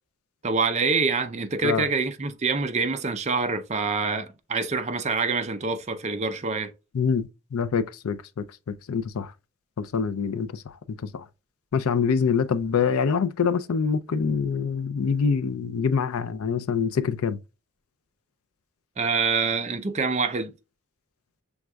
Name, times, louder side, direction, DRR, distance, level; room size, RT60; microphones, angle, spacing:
voice 1, 0.4-6.7 19.0-20.5, right 4 dB, 30° right, 0.4 m, -26 dB
voice 2, 6.9-9.3 9.8-10.5 10.9-11.3 11.7-17.4, left 6 dB, 75° left, 0.4 m, -25 dB
6.2 x 3.5 x 2.2 m
head